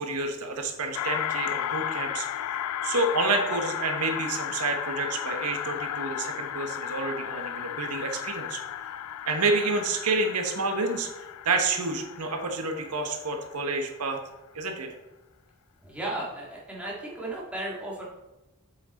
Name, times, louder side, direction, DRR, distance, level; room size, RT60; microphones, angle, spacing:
voice 1, 0.0-2.3 2.8-8.6 9.2-11.1 11.4-14.2 14.5-14.9, right 3 dB, 85° right, 4 dB, 1.1 m, -29 dB
Phantom Train lost in Tunnel, 0.9-13.6, left 10 dB, 85° left, 0.4 m, -34 dB
voice 2, 15.8-18.1, right 1 dB, 5° right, -5 dB, 1.8 m, -35 dB
7.8 x 5.9 x 4.1 m, 1.0 s
head